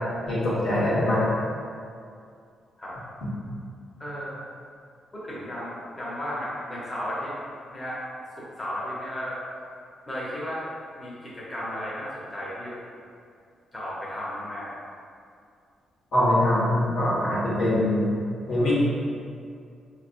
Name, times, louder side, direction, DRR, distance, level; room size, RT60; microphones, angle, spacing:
voice 1, 0.3-1.3 16.1-18.1 18.5-18.7, left 1 dB, 75° left, -8 dB, 1.4 m, -23 dB
voice 2, 4.0-4.5 5.1-7.3 7.7-8.0 8.3-9.4 10.1-10.6 11.0-12.8 13.7-14.8, equal, 20° left, -8 dB, 0.9 m, -34 dB
5.0 x 3.1 x 2.5 m, 2.3 s
cardioid pair, 135°, 0 cm